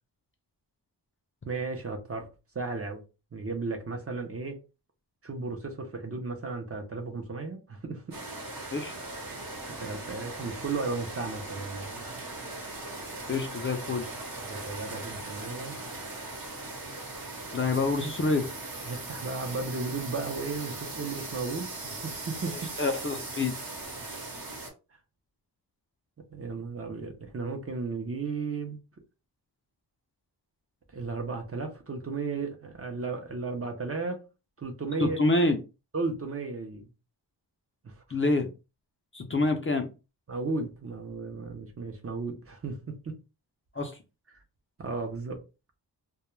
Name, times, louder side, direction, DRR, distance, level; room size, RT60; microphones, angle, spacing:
voice 1, 1.5-3.0 3.3-4.6 5.2-8.0 9.7-12.1 14.4-15.8 18.9-22.7 26.3-28.8 30.9-34.2 34.6-35.2 35.9-36.9 37.8-38.0 40.3-43.1 44.8-45.4, right 4 dB, 35° right, 0.6 m, -34 dB
sound 1, 8.1-24.7, right 2 dB, 55° right, 1.0 m, -39 dB
voice 2, 13.3-14.1 17.5-18.4 22.8-23.5 35.0-35.6 38.1-38.5 39.1-39.9 43.7-44.0, left 3 dB, 30° left, 0.4 m, -26 dB
2.2 x 2.2 x 3.0 m
wide cardioid pair, 100°, 42 cm